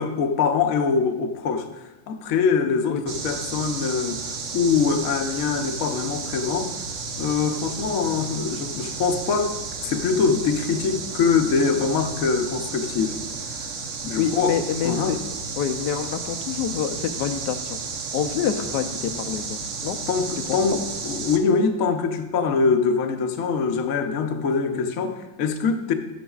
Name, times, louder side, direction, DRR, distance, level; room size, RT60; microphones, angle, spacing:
voice 1, 0.0-6.7 7.2-9.5 9.8-13.2 14.0-14.6 14.8-15.2 20.1-25.9, left 5 dB, 60° left, 5 dB, 1.0 m, -23 dB
sound 1, 3.1-21.4, right 4 dB, 55° right, 1.0 m, -33 dB
voice 2, 14.2-15.2 15.6-17.8 18.1-20.0 20.5-20.6, left 8 dB, 80° left, 6 dB, 1.2 m, -27 dB
12.5 x 10.0 x 2.4 m, 1.1 s
omnidirectional pair, 1.9 m